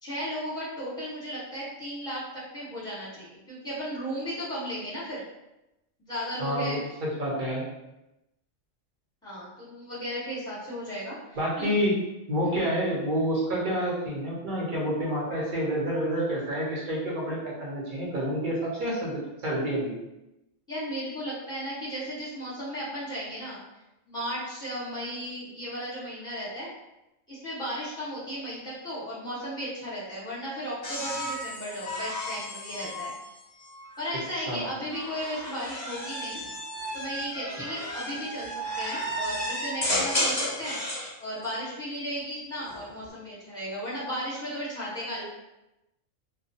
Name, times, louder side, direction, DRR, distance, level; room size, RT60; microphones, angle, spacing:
voice 1, 0.0-5.2 6.0-6.8 9.2-11.7 20.7-23.6 24.1-26.7 27.3-33.1 34.0-36.4 36.9-45.2, equal, 5° left, -10 dB, 1.0 m, -35 dB
voice 2, 6.4-7.6 11.4-12.0 12.3-20.0 34.3-34.6, equal, 45° right, -5 dB, 0.8 m, -28 dB
sound 1, 30.8-34.1 34.9-41.1 42.6-43.1, equal, 30° left, 0.5 m, -33 dB
2.2 x 2.2 x 2.7 m, 0.93 s
omnidirectional pair, 1.4 m